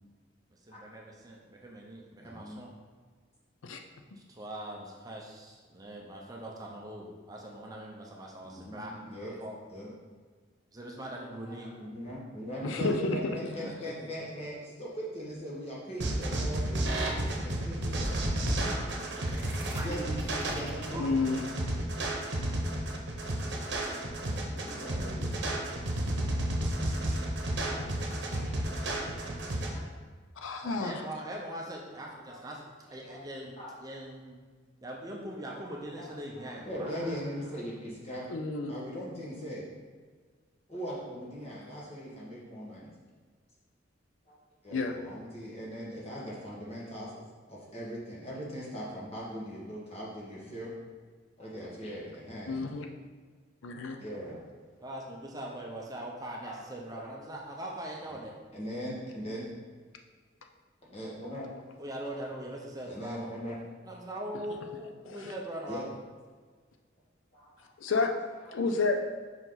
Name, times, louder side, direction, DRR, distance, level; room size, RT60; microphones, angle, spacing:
voice 1, 0.6-2.7 4.2-9.6 10.7-11.7 12.6-12.8 13.6-13.9 19.7-20.4 20.9-21.2 30.6-32.6 32.9-34.4 34.8-37.3 54.8-58.3 61.8-63.3 63.8-65.9, right 1 dB, 20° right, -1 dB, 0.6 m, -41 dB
voice 2, 2.2-2.6 8.4-9.3 9.7-9.9 11.4-17.1 17.4-18.4 19.7-20.0 20.5-21.3 24.0-25.7 26.1-26.2 26.8-29.4 29.7-29.8 32.3-32.4 33.0-33.2 33.6-33.7 36.0-36.1 36.4-38.2 38.7-39.6 40.7-42.9 44.3-44.4 44.6-47.2 47.5-50.7 51.4-52.6 54.0-54.4 55.9-56.0 56.4-56.6 57.0-57.1 58.1-58.2 58.5-59.5 60.8-61.5 62.9-63.5 65.7-65.8 67.3-67.5 67.9-68.0 68.4-68.6, equal, 30° left, -6 dB, 1.6 m, -40 dB
voice 3, 12.6-13.2 21.0-21.4 30.4-30.9 38.3-38.7 44.7-44.9 52.5-52.9 53.6-54.0 65.1-65.2 67.8-68.1 68.5-69.0, left 3 dB, 90° left, 4 dB, 0.5 m, -30 dB
sound 1, 16.0-29.7, right 1 dB, 65° right, 0.9 m, -32 dB
5.3 x 4.8 x 3.9 m, 1.5 s
head